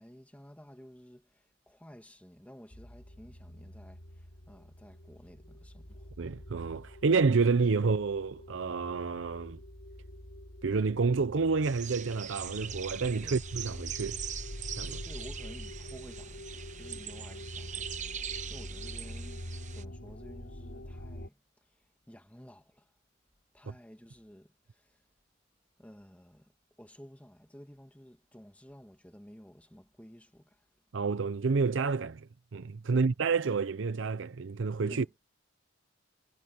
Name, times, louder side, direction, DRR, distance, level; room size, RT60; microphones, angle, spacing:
voice 1, 0.0-6.2 13.2-13.4 15.0-22.9 23.5-25.0 25.8-30.6 32.9-33.1 34.9-35.1, equal, 5° left, 2.0 m, -53 dB
sound 1, 2.7-21.3, equal, 65° left, 3.9 m, -45 dB
voice 2, 6.2-9.6 10.6-14.2 14.8-15.0 30.9-35.1, right 4 dB, 65° right, 0.6 m, -29 dB
sound 2, 11.6-19.8, right 9 dB, 35° right, 0.9 m, -42 dB
head